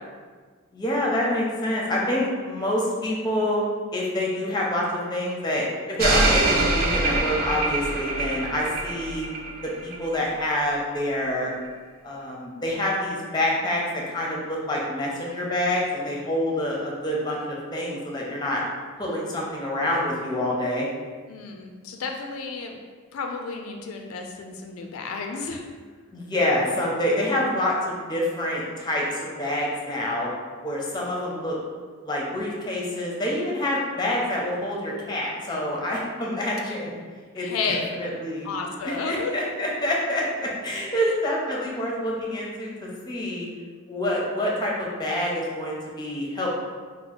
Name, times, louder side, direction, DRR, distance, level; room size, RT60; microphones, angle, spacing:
voice 1, 0.7-3.6 3.9-9.3 9.8-11.5 12.0-18.6 19.0-20.9 26.1-30.3 30.6-31.6 32.0-36.9 37.3-38.5 38.8-43.5 43.9-46.5, left 1 dB, 20° left, -3 dB, 0.6 m, -27 dB
sound 1, 6.0-10.2 10.5-10.6, right 2 dB, 45° right, 0.3 m, -24 dB
voice 2, 21.3-22.8 23.1-25.6 37.4-38.0 38.4-39.3 41.0-41.1, left 4 dB, 80° left, 3 dB, 0.3 m, -32 dB
2.8 x 2.0 x 4.0 m, 1.5 s
head